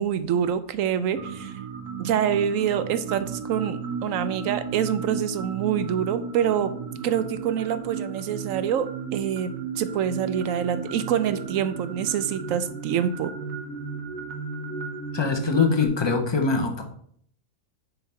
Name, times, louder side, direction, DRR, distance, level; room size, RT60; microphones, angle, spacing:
voice 1, 0.0-1.5 2.0-6.7 7.0-13.3, right 9 dB, 70° right, 12 dB, 0.9 m, -26 dB
sound 1, 1.1-15.9, right 6 dB, 85° right, 1.5 m, -34 dB
voice 2, 15.1-16.8, left 4 dB, 40° left, 4 dB, 0.3 m, -23 dB
7.0 x 4.7 x 4.3 m, 0.62 s
omnidirectional pair, 1.6 m